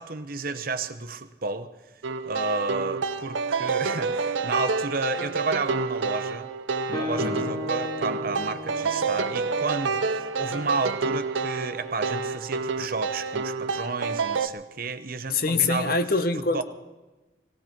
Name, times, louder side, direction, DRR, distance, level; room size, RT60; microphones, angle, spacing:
voice 1, 0.0-1.7 2.2-6.5 6.9-16.0 16.5-16.6, right 3 dB, 50° right, 10 dB, 0.8 m, -31 dB
sound 1, 2.0-14.5, right 4 dB, 80° right, 0.6 m, -29 dB
Guitar, 6.9-10.6, left 3 dB, 20° left, 1.9 m, -36 dB
voice 2, 7.2-7.5 15.3-16.6, left 3 dB, 50° left, 10 dB, 0.8 m, -25 dB
19.0 x 16.5 x 4.5 m, 1.1 s
head